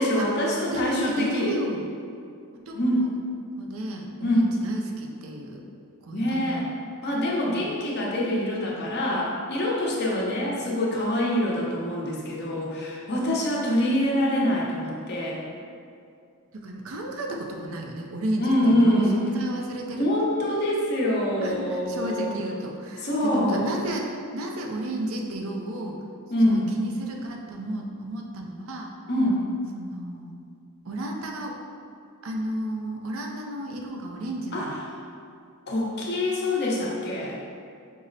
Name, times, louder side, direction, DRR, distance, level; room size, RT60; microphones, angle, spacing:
voice 1, 0.0-1.5 2.7-3.1 4.2-4.5 6.1-6.6 7.0-15.4 18.4-19.2 20.0-22.3 23.0-23.7 26.3-26.7 29.1-29.4 34.5-34.7 35.7-37.4, left 1 dB, 50° left, -4 dB, 0.8 m, -25 dB
voice 2, 0.7-1.9 2.5-3.1 3.6-5.6 6.0-6.7 7.5-7.7 16.5-20.1 21.4-26.0 26.4-28.9 29.7-30.3 30.8-31.5 32.2-34.7, right 1 dB, 65° right, 1 dB, 0.5 m, -32 dB
5.3 x 2.0 x 3.9 m, 2.4 s
head